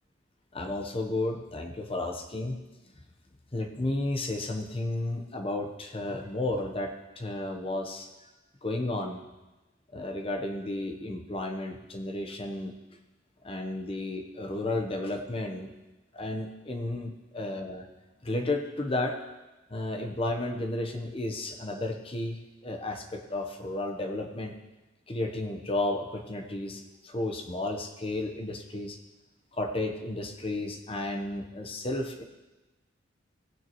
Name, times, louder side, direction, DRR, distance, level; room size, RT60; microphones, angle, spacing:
voice 1, 0.5-2.6 3.5-8.3 8.6-9.2 9.9-12.8 13.4-15.7 16.1-17.9 18.2-19.2 19.7-24.5 25.1-29.0 29.5-32.2, left 2 dB, 30° left, 4 dB, 0.9 m, -33 dB
16.5 x 9.3 x 3.0 m, 1.1 s
head